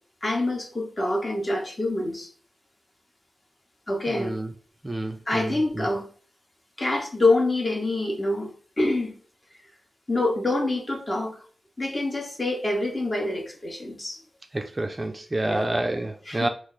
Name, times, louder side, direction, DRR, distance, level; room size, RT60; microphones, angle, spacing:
voice 1, 0.2-2.3 3.9-4.4 5.3-6.1 6.8-9.1 10.1-11.4 11.8-14.2 15.4-15.7 16.3-16.5, left 2 dB, 30° left, 0.9 m, -26 dB
voice 2, 4.1-4.5 4.8-5.9 14.5-16.5, right 1 dB, 25° right, 0.4 m, -28 dB
3.1 x 2.4 x 3.7 m
wide cardioid pair, 90°, 0 cm